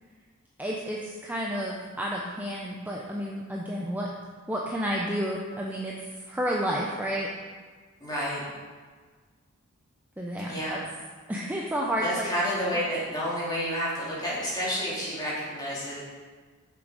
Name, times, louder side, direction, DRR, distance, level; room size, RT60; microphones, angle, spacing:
voice 1, 0.6-4.1 4.5-5.9 6.3-7.3 10.2-10.8 11.3-12.3 12.6-12.8, equal, 10° right, -3 dB, 0.6 m, -31 dB
voice 2, 8.0-8.4 10.4-10.8 12.0-16.0, equal, 20° left, -8 dB, 2.7 m, -30 dB
7.0 x 6.4 x 4.8 m, 1.5 s
head